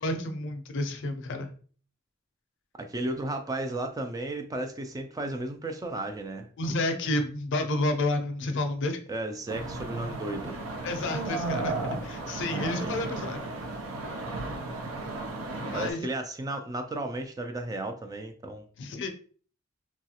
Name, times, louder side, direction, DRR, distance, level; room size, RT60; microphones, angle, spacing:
voice 1, 0.0-1.5 6.6-9.0 10.8-11.7 12.0-13.4 15.7-16.0 18.8-19.1, left 2 dB, 60° left, 6 dB, 0.5 m, -30 dB
voice 2, 2.8-6.5 9.1-10.6 12.8-13.1 15.7-18.7, right 2 dB, 15° right, 6 dB, 0.3 m, -34 dB
sound 1, 9.5-15.9, right 2 dB, 75° right, 0.6 m, -34 dB
3.1 x 2.3 x 2.8 m, 0.43 s
head